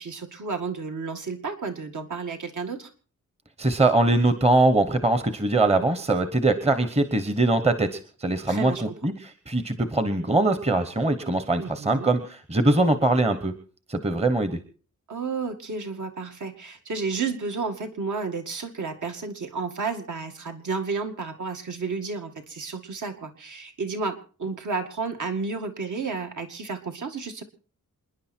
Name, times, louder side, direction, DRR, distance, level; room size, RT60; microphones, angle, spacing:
voice 1, 0.0-2.9 8.5-8.8 11.6-12.1 15.1-27.4, right 4 dB, 65° right, 5 dB, 2.2 m, -32 dB
voice 2, 3.6-13.5 13.9-14.6, right 2 dB, 20° right, 10 dB, 1.0 m, -22 dB
27.5 x 10.5 x 4.4 m, 0.40 s
wide cardioid pair, 180°, 32 cm